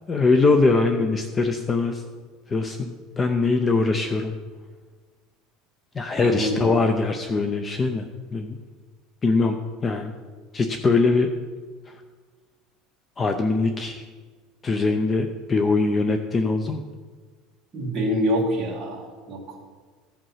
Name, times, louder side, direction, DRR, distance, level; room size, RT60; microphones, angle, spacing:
voice 1, 0.1-2.0 2.5-4.3 5.9-8.1 8.3-8.6 9.2-10.1 10.5-11.3 11.9-12.0 13.2-14.0 14.6-16.8, left 3 dB, 15° left, 7 dB, 0.5 m, -22 dB
voice 2, 6.2-6.7 17.7-19.7, equal, 25° right, -3 dB, 2.2 m, -26 dB
14.5 x 5.3 x 5.7 m, 1.4 s
cardioid pair, 170°, 0 cm